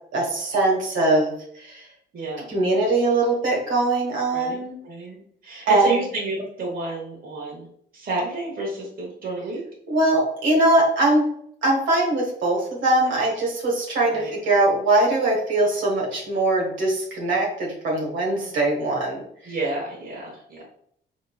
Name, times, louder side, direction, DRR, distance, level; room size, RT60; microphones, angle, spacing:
voice 1, 0.1-1.9 2.5-4.8 5.7-5.9 9.9-11.3 11.6-19.5, right 2 dB, 70° right, -2 dB, 1.4 m, -21 dB
voice 2, 2.1-2.5 4.3-7.7 7.9-9.6 14.1-14.3 18.3-18.5 19.4-20.6, right 3 dB, 45° right, -3 dB, 1.2 m, -30 dB
3.8 x 3.0 x 2.3 m, 0.67 s
cardioid pair, 90°, 20 cm